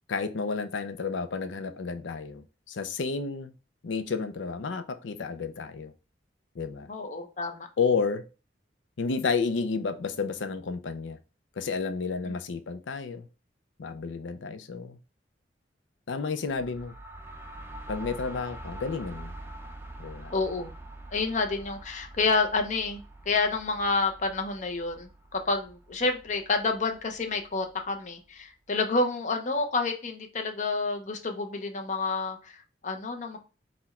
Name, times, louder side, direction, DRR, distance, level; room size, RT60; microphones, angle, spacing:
voice 1, 0.1-3.5 3.8-5.9 6.5-6.9 7.8-8.3 9.0-11.2 11.6-13.3 13.8-15.0 16.1-16.9 17.9-19.3 20.0-20.3, left 5 dB, 80° left, 0.5 m, -31 dB
voice 2, 6.9-7.7 20.3-20.7 21.1-33.4, left 3 dB, 40° left, 0.7 m, -29 dB
sound 1, 16.5-28.1, right 1 dB, 15° right, 0.4 m, -45 dB
4.2 x 2.2 x 4.2 m
head